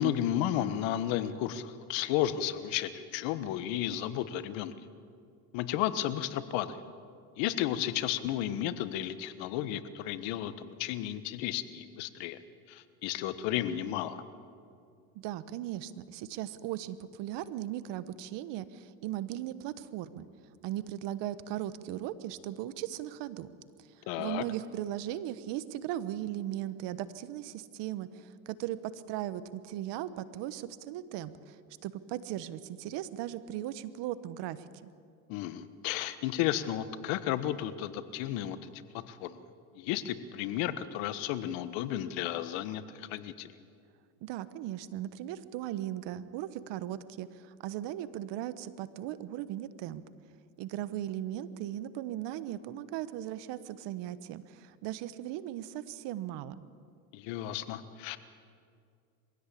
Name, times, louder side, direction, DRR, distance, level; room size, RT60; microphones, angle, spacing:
voice 1, 0.0-4.7 5.5-6.8 7.4-12.4 12.7-14.2 24.1-24.4 35.3-38.7 38.9-39.4 39.7-43.5 57.1-58.2, left 11 dB, 70° left, 13 dB, 1.4 m, -33 dB
voice 2, 15.1-20.3 20.6-23.5 24.2-34.9 44.2-50.0 50.6-56.6, right 12 dB, 60° right, 14 dB, 1.3 m, -38 dB
23.0 x 16.5 x 8.5 m, 2.3 s
supercardioid pair, 100°, 47 cm